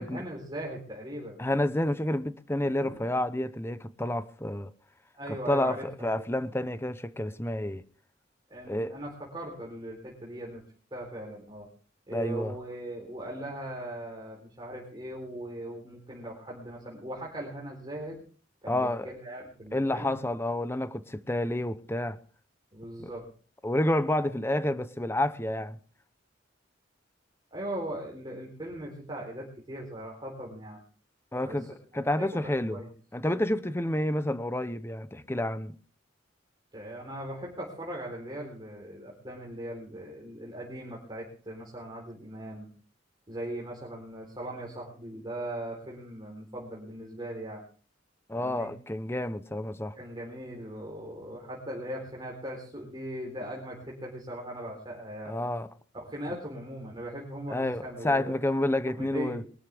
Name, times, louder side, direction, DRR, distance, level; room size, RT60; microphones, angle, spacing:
voice 1, 0.0-1.4 2.8-3.0 5.1-6.2 8.5-10.6 10.9-11.7 12.1-18.2 18.6-20.2 22.7-23.3 27.5-30.8 31.4-31.6 31.9-32.3 32.7-32.9 36.7-42.7 43.3-47.6 48.3-48.7 50.0-55.4 55.9-58.2 58.9-59.4, right 1 dB, 25° right, 4.0 m, -39 dB
voice 2, 1.4-4.7 5.3-7.8 8.7-8.9 12.1-12.5 18.7-19.1 19.7-22.2 23.0-23.1 23.6-25.8 31.3-32.8 33.1-35.7 48.3-50.0 55.3-55.7 57.5-59.4, left 1 dB, 15° left, 0.8 m, -29 dB
22.5 x 13.0 x 3.6 m
head